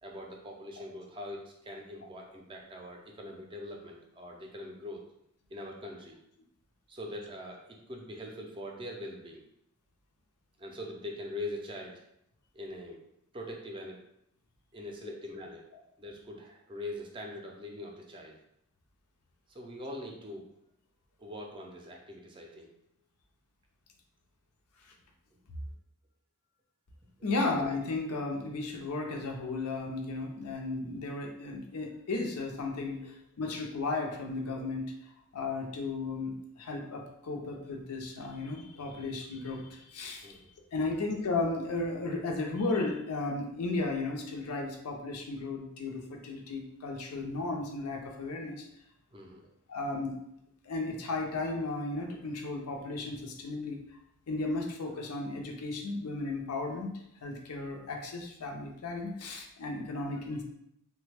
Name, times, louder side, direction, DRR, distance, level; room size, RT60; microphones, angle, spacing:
voice 1, 0.0-5.0 5.5-6.2 6.9-9.4 10.6-12.0 12.5-13.0 13.3-14.0 14.7-15.7 16.0-18.4 19.5-20.4 21.2-22.7 25.3-25.4 27.2-27.3 33.0-33.1 40.2-40.5 49.1-49.4, left 1 dB, 20° right, 0 dB, 0.4 m, -42 dB
voice 2, 27.2-34.9 35.3-40.4 40.7-48.6 49.7-50.1 50.6-53.8 54.3-60.4, left 3 dB, 85° left, 2 dB, 0.6 m, -34 dB
3.2 x 2.2 x 3.3 m, 0.77 s
head